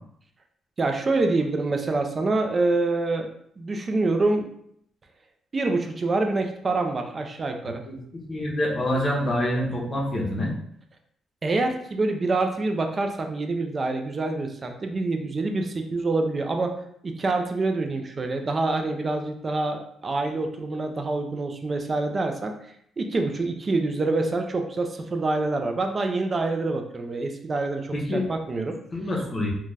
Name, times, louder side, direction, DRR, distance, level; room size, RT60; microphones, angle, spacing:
voice 1, 0.8-3.3 3.6-4.5 5.5-7.8 11.4-16.8 17.0-22.5 23.0-28.7, right 3 dB, 35° right, 4 dB, 0.4 m, -26 dB
voice 2, 7.9-10.5 27.9-28.2 28.9-29.5, left 1 dB, 30° left, -2 dB, 0.8 m, -26 dB
2.5 x 2.2 x 3.2 m, 0.68 s
cardioid pair, 90°, 0 cm